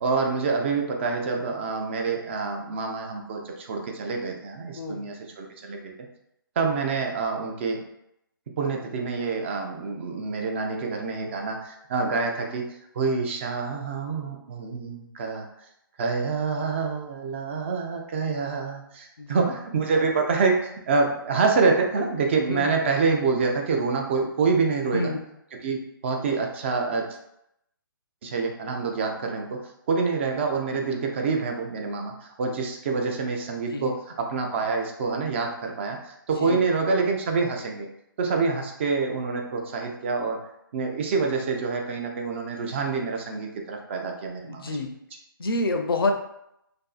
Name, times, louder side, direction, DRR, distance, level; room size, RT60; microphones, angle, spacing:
voice 1, 0.0-5.9 6.6-7.8 8.6-12.6 12.9-15.5 16.0-25.1 25.6-27.2 28.2-29.6 29.9-37.9 38.2-40.4 40.7-44.7, right 4 dB, 30° right, 2 dB, 0.3 m, -26 dB
voice 2, 19.2-19.5 22.5-22.7 24.9-25.2 33.7-33.9 36.4-36.6 44.4-44.9 45.4-46.1, left 2 dB, 80° left, 4 dB, 0.5 m, -28 dB
2.6 x 2.3 x 2.3 m, 0.80 s
figure-of-eight pair, 145°, 12 cm